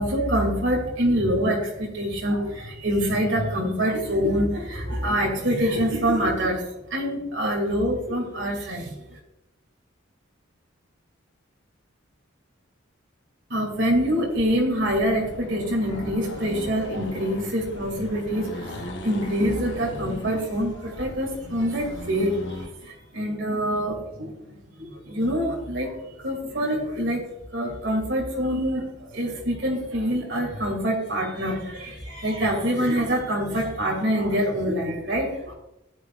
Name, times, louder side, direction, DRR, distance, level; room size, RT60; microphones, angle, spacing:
voice 1, 0.0-9.2 13.5-27.2 27.5-35.5, equal, 55° right, -2 dB, 2.7 m, -25 dB
Accelerating revving vroom, 14.0-22.7, left 1 dB, 55° left, 1.1 m, -38 dB
15.0 x 9.9 x 2.5 m, 0.89 s
head